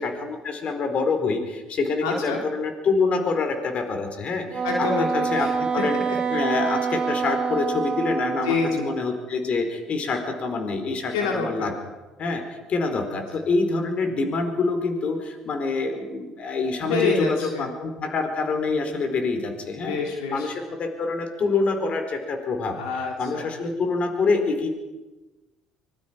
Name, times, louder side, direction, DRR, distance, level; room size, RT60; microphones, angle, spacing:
voice 1, 0.0-6.0 6.3-11.7 12.2-12.4 12.7-20.0 20.3-22.8 23.2-24.7, left 3 dB, 50° left, 5 dB, 4.5 m, -26 dB
voice 2, 2.0-2.4 4.6-5.5 8.4-8.9 11.1-11.8 13.1-13.2 16.8-17.7 19.7-20.5 22.7-23.5, left 4 dB, 85° left, 0 dB, 3.6 m, -27 dB
Wind instrument woodwind instrument, 4.5-9.0, right 5 dB, 40° right, 2.0 m, -26 dB
24.5 x 22.5 x 5.3 m, 1.1 s
hypercardioid pair, 65°, 3 cm